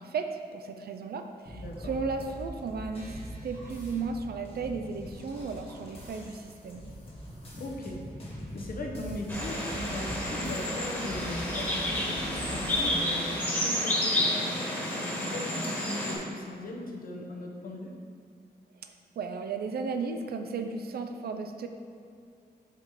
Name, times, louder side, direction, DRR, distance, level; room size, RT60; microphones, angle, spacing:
voice 1, 0.0-6.8 18.8-18.9 19.2-21.7, right 4 dB, 70° right, 6 dB, 0.5 m, -35 dB
voice 2, 1.5-1.9 7.6-8.0 8.5-17.9, left 2 dB, 60° left, 0 dB, 0.9 m, -39 dB
sound 1, 1.5-13.0, equal, 35° left, 1.3 m, -42 dB
sound 2, 9.3-16.2, left 1 dB, 10° left, 1.3 m, -30 dB
5.2 x 4.1 x 4.8 m, 2.4 s
wide cardioid pair, 140°, 17 cm